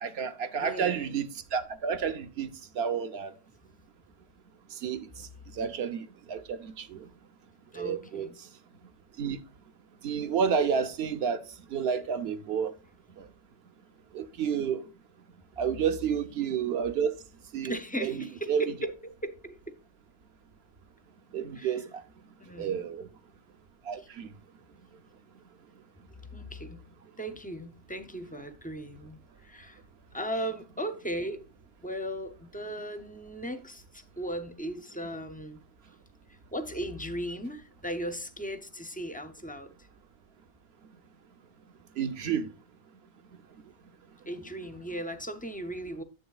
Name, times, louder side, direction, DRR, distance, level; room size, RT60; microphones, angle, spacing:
voice 1, 0.0-3.3 4.8-5.0 5.6-7.0 7.8-8.3 9.2-9.4 10.0-11.4 11.7-12.7 14.1-14.8 15.6-17.1 17.5-17.7 18.0-18.6 21.3-21.9 22.6-23.1 23.9-24.3 42.0-42.5, right 7 dB, 65° right, 0.9 m, -30 dB
voice 2, 0.6-1.2 7.7-8.4 17.6-19.6 21.5-21.8 22.4-22.9 24.0-24.1 26.3-26.9 27.2-29.8 30.1-31.4 31.8-35.6 36.5-39.7 44.3-46.0, right 1 dB, 15° left, 0.3 m, -37 dB
9.4 x 7.8 x 2.3 m
omnidirectional pair, 1.2 m